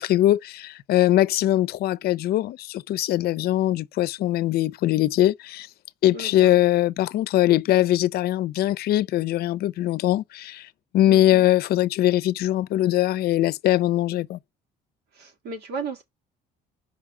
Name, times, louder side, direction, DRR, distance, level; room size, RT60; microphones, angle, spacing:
voice 1, 0.0-5.7 6.0-10.7 10.9-14.4, left 14 dB, 70° left, 0.6 m, -21 dB
voice 2, 6.1-6.6 11.1-11.4 15.1-16.0, right 4 dB, 75° right, 2.7 m, -35 dB
5.4 x 4.8 x 5.5 m
cardioid pair, 110°, 17 cm